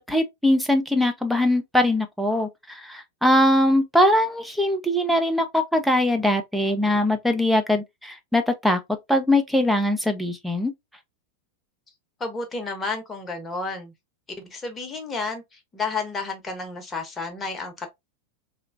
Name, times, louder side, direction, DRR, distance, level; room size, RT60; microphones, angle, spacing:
voice 1, 0.1-8.8 9.1-10.7, left 1 dB, ahead, 0.6 m, -21 dB
voice 2, 12.2-13.9 14.4-17.9, left 3 dB, 15° left, 1.0 m, -31 dB
3.3 x 2.9 x 2.5 m
figure-of-eight pair, 90°, 0 cm